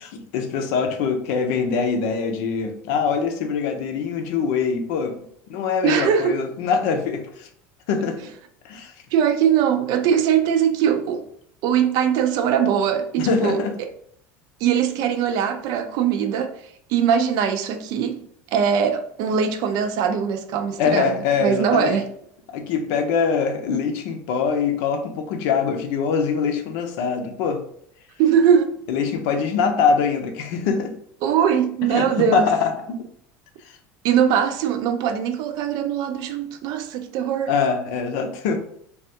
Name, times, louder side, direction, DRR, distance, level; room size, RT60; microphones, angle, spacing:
voice 1, 0.1-5.1 5.5-7.5 7.9-8.2 8.6-8.9 13.2-13.7 20.8-22.0 22.5-27.6 28.9-30.9 31.8-33.1 33.6-33.8 37.5-38.6, left 5 dB, 75° left, 0.6 m, -23 dB
voice 2, 5.8-6.4 9.1-11.3 11.6-13.9 14.6-16.6 16.9-18.2 18.5-22.1 28.2-28.7 31.2-32.5 34.0-37.5, right 8 dB, 60° right, 0.4 m, -21 dB
3.4 x 2.3 x 2.7 m
supercardioid pair, 115°, 8 cm